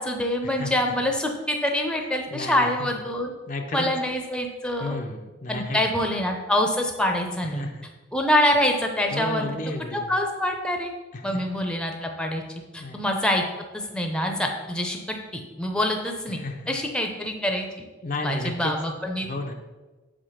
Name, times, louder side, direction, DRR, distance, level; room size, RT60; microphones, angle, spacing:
voice 1, 0.0-3.3 3.7-5.0 5.5-7.6 8.1-9.5 9.9-10.9 11.2-12.4 12.7-13.4 13.7-16.4 16.7-17.7 18.2-19.3, left 1 dB, 5° left, 3 dB, 0.7 m, -25 dB
voice 2, 2.3-2.9 3.5-3.9 4.8-6.1 7.6-7.9 9.1-10.0 11.1-11.4 12.8-13.0 16.4-16.7 18.0-18.7 19.2-19.5, left 2 dB, 40° left, 3 dB, 0.6 m, -32 dB
6.4 x 5.0 x 5.7 m, 1.2 s
head